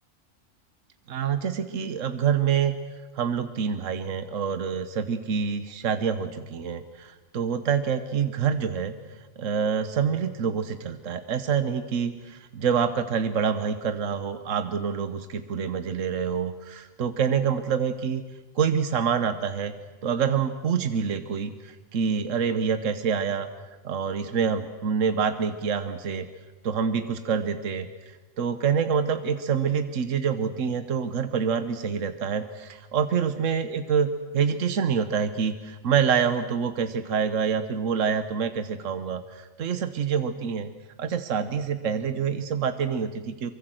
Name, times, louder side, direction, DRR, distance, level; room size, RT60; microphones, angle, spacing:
voice 1, 1.1-2.8 3.1-8.9 9.4-18.2 18.5-19.7 20.0-23.5 23.8-26.3 26.6-34.1 34.3-40.7 41.0-43.5, right 7 dB, 75° right, 10 dB, 1.4 m, -26 dB
24.5 x 23.0 x 7.7 m, 1.2 s
omnidirectional pair, 1.3 m